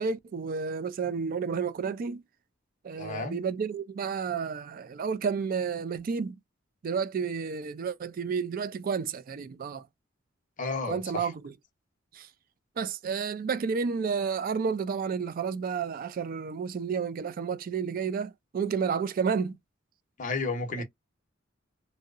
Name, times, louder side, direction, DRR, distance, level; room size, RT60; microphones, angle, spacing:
voice 1, 0.0-2.2 2.8-6.4 6.8-9.9 10.8-11.5 12.1-12.3 12.8-19.6 20.8-20.9, right 6 dB, 45° right, 0.3 m, -31 dB
voice 2, 3.0-3.4 10.6-11.3 20.2-20.8, left 3 dB, 40° left, 0.7 m, -32 dB
2.7 x 2.0 x 2.3 m
head